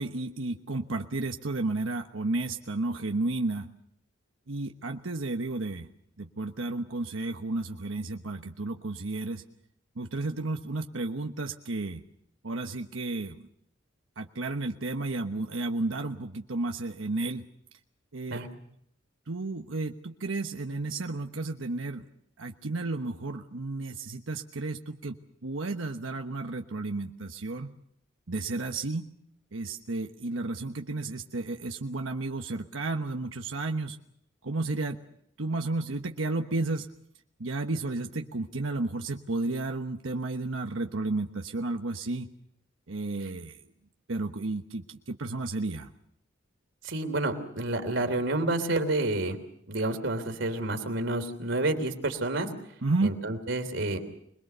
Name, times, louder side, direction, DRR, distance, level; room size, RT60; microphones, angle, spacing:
voice 1, 0.0-3.7 4.5-5.9 6.2-9.4 10.0-12.0 12.4-13.4 14.2-17.4 18.1-18.4 19.3-22.0 22.4-27.7 28.3-29.1 29.5-34.0 34.4-35.0 35.4-36.9 37.4-42.3 42.9-43.6 44.1-45.9 52.8-53.2, right 2 dB, 85° right, 4 dB, 1.2 m, -32 dB
voice 2, 46.8-49.4 49.7-52.5 53.0-54.0, right 2 dB, 70° right, 6 dB, 3.2 m, -29 dB
26.0 x 21.5 x 6.8 m, 0.73 s
head